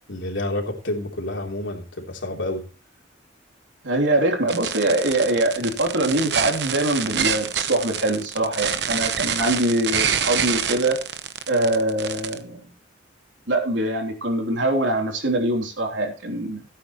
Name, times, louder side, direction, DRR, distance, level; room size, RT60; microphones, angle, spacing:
voice 1, 0.1-2.7, left 1 dB, 80° left, 1 dB, 3.3 m, -29 dB
voice 2, 3.8-11.0 11.5-12.7 13.5-16.6, right 1 dB, 80° right, 2 dB, 3.3 m, -23 dB
sound 1, 4.5-12.4, right 8 dB, 60° right, 0.9 m, -26 dB
16.5 x 9.0 x 3.0 m, 0.34 s
head